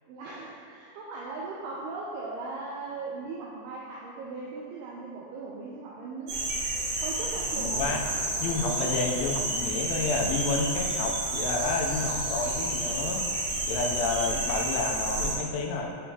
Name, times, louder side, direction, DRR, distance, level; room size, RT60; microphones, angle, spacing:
voice 1, 0.1-6.5 7.0-7.9 8.3-8.9, right 3 dB, 90° right, -4 dB, 2.2 m, -38 dB
sound 1, 6.3-15.3, right 2 dB, 70° right, 3.7 m, -30 dB
voice 2, 7.6-8.0 8.4-13.3 13.6-15.9, left 3 dB, 85° left, 1 dB, 3.0 m, -30 dB
8.7 x 5.4 x 2.8 m, 2.2 s
omnidirectional pair, 5.4 m